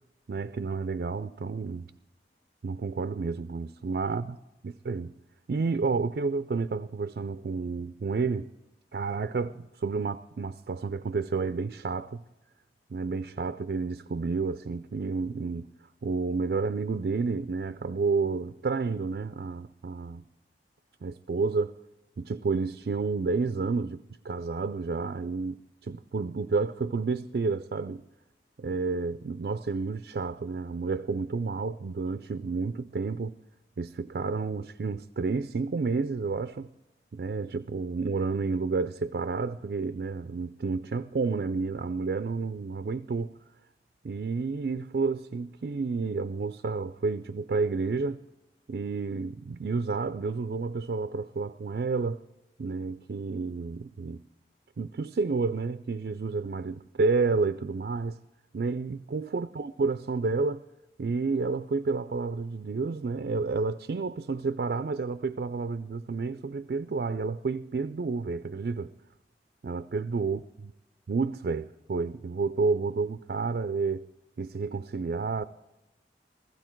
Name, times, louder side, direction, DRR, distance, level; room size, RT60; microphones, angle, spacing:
voice 1, 0.3-1.9 2.6-4.3 4.6-5.1 5.5-8.5 8.9-12.2 12.9-15.7 16.0-20.2 21.0-21.8 22.2-28.0 28.6-33.4 33.8-36.7 37.1-43.3 44.0-48.2 48.7-52.2 52.6-54.2 54.8-58.2 58.5-60.6 61.0-68.9 69.6-70.4 71.1-74.1 74.4-75.4, right 4 dB, 60° right, 0.4 m, -30 dB
15.5 x 14.5 x 4.5 m
head